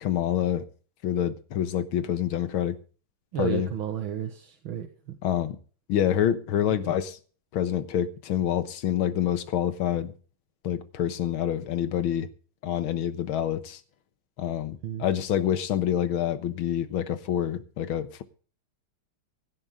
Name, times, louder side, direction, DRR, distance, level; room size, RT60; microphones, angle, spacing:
voice 1, 0.0-0.7 1.0-2.8 3.4-3.7 5.2-5.6 5.9-7.2 7.5-10.1 10.6-12.3 12.6-13.8 14.4-18.2, left 10 dB, 80° left, 2.0 m, -27 dB
voice 2, 3.3-5.2 6.7-6.9 14.8-15.1, right 9 dB, 75° right, 2.2 m, -33 dB
17.0 x 10.5 x 3.7 m
omnidirectional pair, 2.2 m